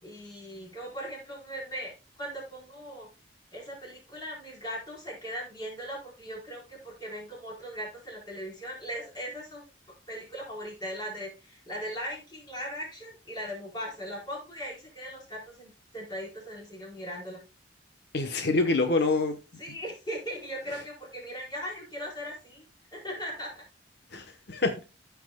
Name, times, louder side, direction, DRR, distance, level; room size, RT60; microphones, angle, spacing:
voice 1, 0.0-1.9 2.2-3.1 3.5-9.6 10.1-17.4 19.6-22.6 22.9-23.6, equal, 25° left, -3 dB, 4.4 m, -39 dB
voice 2, 18.1-19.4 24.1-24.8, left 3 dB, 65° left, 6 dB, 1.0 m, -26 dB
14.5 x 5.9 x 2.2 m, 0.29 s
head